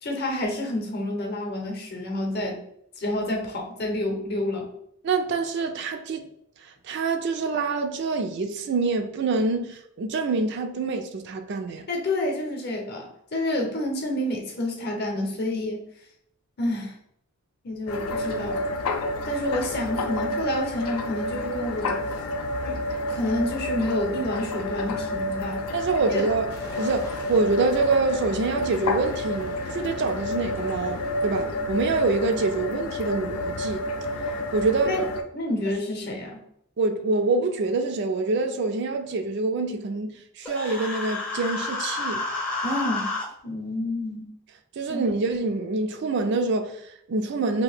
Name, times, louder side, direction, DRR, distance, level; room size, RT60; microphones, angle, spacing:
voice 1, 0.0-2.6 3.0-4.7 11.9-15.8 16.6-16.9 17.6-18.6 19.2-22.0 22.6-22.8 23.1-25.6 26.1-26.2 34.8-35.1 35.3-36.4 42.6-43.1 43.4-44.3 44.9-45.1, left 1 dB, 45° left, 0.7 m, -29 dB
voice 2, 5.0-6.3 6.6-11.9 25.7-26.5 26.8-33.9 34.5-35.0 36.8-42.3 44.8-47.6, right 3 dB, 50° right, 0.3 m, -26 dB
sound 1, 17.9-35.2, left 1 dB, 75° left, 0.4 m, -30 dB
sound 2, 26.5-31.5, right 2 dB, 80° right, 0.7 m, -43 dB
Human voice, 40.5-43.3, left 3 dB, 5° left, 0.5 m, -30 dB
2.8 x 2.6 x 3.3 m
head